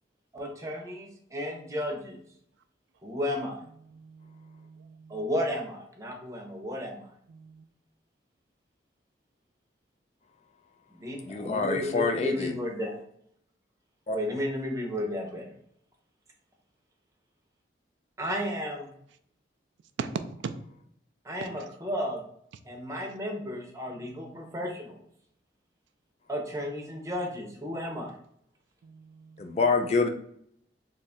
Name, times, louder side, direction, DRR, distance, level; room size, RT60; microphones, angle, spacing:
voice 1, 0.3-2.2 3.0-3.6 5.1-7.0 11.0-12.9 14.1-15.5 18.2-18.9 21.3-22.2 22.7-25.0 26.3-28.1, left 1 dB, 15° right, 1 dB, 0.7 m, -33 dB
voice 2, 3.7-5.3 7.3-7.7 20.0-20.1 20.4-20.5 21.6-21.7 24.0-24.8 26.5-27.1 28.8-29.6, right 5 dB, 80° right, 9 dB, 0.3 m, -43 dB
voice 3, 11.2-12.5 14.1-14.2 29.4-30.1, left 4 dB, 35° left, 6 dB, 0.3 m, -26 dB
3.1 x 2.4 x 4.2 m, 0.69 s
head